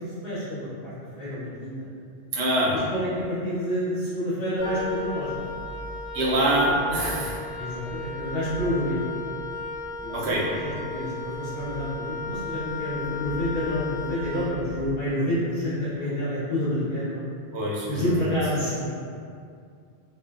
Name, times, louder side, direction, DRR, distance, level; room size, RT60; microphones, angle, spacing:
voice 1, 0.0-1.9 2.6-5.4 6.6-6.7 7.6-9.0 10.0-17.2 17.9-18.9, left 1 dB, 65° left, -12 dB, 1.3 m, -29 dB
voice 2, 2.3-2.8 6.1-7.4 10.1-10.4 17.5-18.3, right 1 dB, 85° right, -5 dB, 0.9 m, -24 dB
Wind instrument woodwind instrument, 4.6-15.0, left 2 dB, 50° left, 0.4 m, -35 dB
3.1 x 2.1 x 2.4 m, 2.4 s
omnidirectional pair, 1.1 m